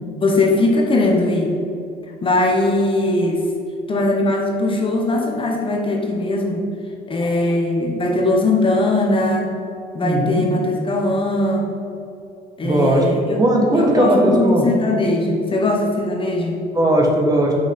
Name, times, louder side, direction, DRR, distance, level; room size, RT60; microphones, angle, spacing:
voice 1, 0.2-1.5 2.2-3.5 3.9-6.6 7.1-9.5 9.9-11.7 12.6-13.4 13.7-16.6, left 2 dB, 30° left, 0 dB, 1.1 m, -20 dB
voice 2, 10.0-10.4 12.6-14.6 16.7-17.5, right 1 dB, 20° right, -1 dB, 1.4 m, -17 dB
6.2 x 5.5 x 5.3 m, 2.7 s
cardioid pair, 110°, 17 cm